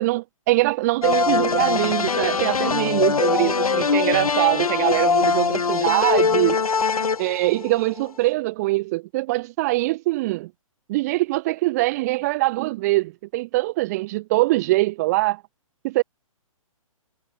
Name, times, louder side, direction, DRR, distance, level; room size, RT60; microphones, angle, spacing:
voice 1, 0.0-6.6 7.2-10.5 10.9-15.4 15.8-16.0, right 20 dB, 30° right, 0.9 m, -23 dB
sound 1, 1.0-8.0, left 5 dB, 85° left, 7.3 m, -22 dB
hypercardioid pair, 150°, 18 cm